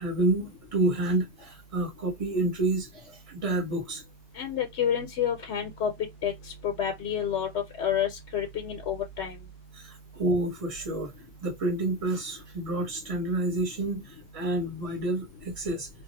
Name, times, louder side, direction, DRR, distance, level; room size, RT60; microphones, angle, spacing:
voice 1, 0.0-4.0 9.7-11.1 11.4-15.9, right 2 dB, 30° right, 1.0 m, -29 dB
voice 2, 4.3-5.9 6.2-7.5 7.8-9.4, left 8 dB, 80° left, 0.9 m, -29 dB
2.3 x 2.0 x 3.9 m
omnidirectional pair, 1.1 m